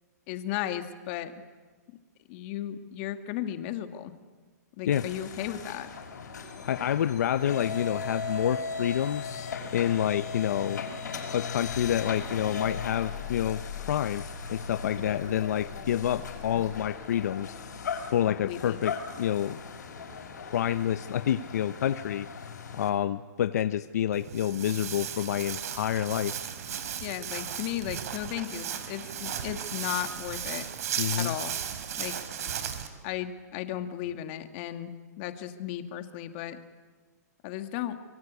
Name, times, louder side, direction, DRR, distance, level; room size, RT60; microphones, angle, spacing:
voice 1, 0.3-1.3 1.9-2.0 2.3-4.1 4.8-5.9 15.0-15.1 18.3-18.8 27.0-30.7 31.1-31.5 32.0-32.1 33.0-34.9 35.2-36.6 37.4-38.0, left 12 dB, 40° left, 8 dB, 2.0 m, -35 dB
sound 1, 4.9-22.9, left 5 dB, 85° left, 5.9 m, -38 dB
voice 2, 6.6-10.8 11.3-14.2 14.5-17.5 18.0-19.6 20.4-22.3 22.7-26.3 31.0-31.3, left 10 dB, 65° left, 11 dB, 0.8 m, -28 dB
Walk footsteps, 24.1-32.9, right 9 dB, 60° right, 3.7 m, -35 dB
26.5 x 23.0 x 8.4 m, 1.4 s
hypercardioid pair, 150°, 9 cm